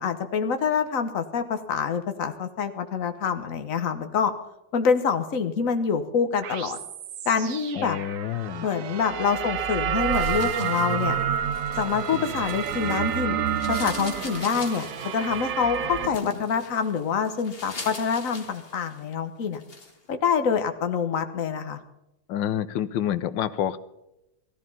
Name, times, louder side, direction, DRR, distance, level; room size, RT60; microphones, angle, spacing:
voice 1, 0.0-4.3 4.7-6.8 7.2-8.0 8.6-11.2 11.8-13.4 13.7-14.9 15.1-19.6 20.1-21.8, left 6 dB, 45° left, 8 dB, 1.5 m, -26 dB
sound 1, 6.4-16.1, right 9 dB, 60° right, 0.9 m, -29 dB
voice 2, 7.8-8.7 22.3-23.8, left 10 dB, 75° left, 14 dB, 1.4 m, -28 dB
sound 2, 10.0-13.2 13.5-19.1 19.5-19.9, left 3 dB, 30° left, 2.0 m, -41 dB
17.0 x 14.0 x 5.5 m, 0.90 s
omnidirectional pair, 2.1 m